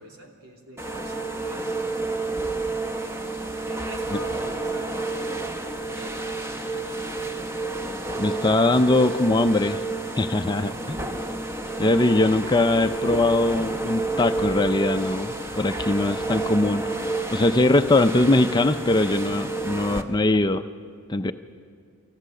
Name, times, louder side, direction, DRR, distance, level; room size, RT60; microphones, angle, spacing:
voice 1, 0.0-1.8 2.9-5.1 5.6-7.3 10.5-11.1, equal, 80° right, 0 dB, 3.0 m, -45 dB
sound 1, 0.8-20.0, right 2 dB, 10° right, 0.8 m, -30 dB
voice 2, 8.2-9.8 10.2-10.7 11.8-16.8 17.3-20.6 21.1-21.3, left 2 dB, 20° left, 9 dB, 0.4 m, -21 dB
27.0 x 14.5 x 6.5 m, 2.2 s
head